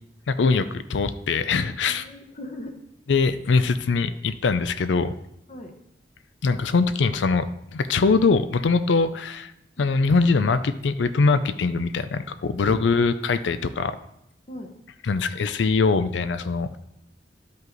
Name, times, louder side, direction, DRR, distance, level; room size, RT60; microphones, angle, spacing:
voice 1, 0.3-2.0 3.1-5.1 6.4-7.5 7.7-9.5 9.8-14.0 15.0-16.8, left 4 dB, 85° left, 12 dB, 0.5 m, -22 dB
voice 2, 1.9-2.8 3.5-3.6 5.5-5.7 14.5-14.7, left 1 dB, 40° left, 3 dB, 1.0 m, -40 dB
12.5 x 5.4 x 3.9 m, 0.81 s
head